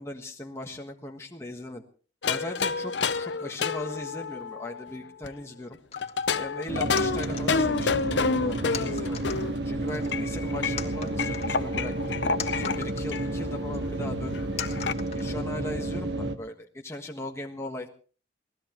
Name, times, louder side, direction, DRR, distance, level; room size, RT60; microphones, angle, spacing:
voice 1, 0.0-1.8 2.3-5.8 6.3-9.2 9.6-12.2 12.5-14.5 15.1-17.9, left 1 dB, 15° left, 1 dB, 1.4 m, -38 dB
sound 1, 2.2-5.3 6.0-9.6 10.1-12.8 13.1-13.3 13.5-13.6 13.9-14.9, left 5 dB, 75° left, 0.8 m, -29 dB
sound 2, 5.9-6.3 7.0-8.1 8.7-9.5 9.9-10.4 10.8-13.3 13.7-13.8 14.6-15.7, left 7 dB, 35° left, 2.0 m, -40 dB
sound 3, 6.7-16.4, right 1 dB, 70° right, 1.5 m, -31 dB
25.5 x 18.0 x 3.1 m, 0.40 s
head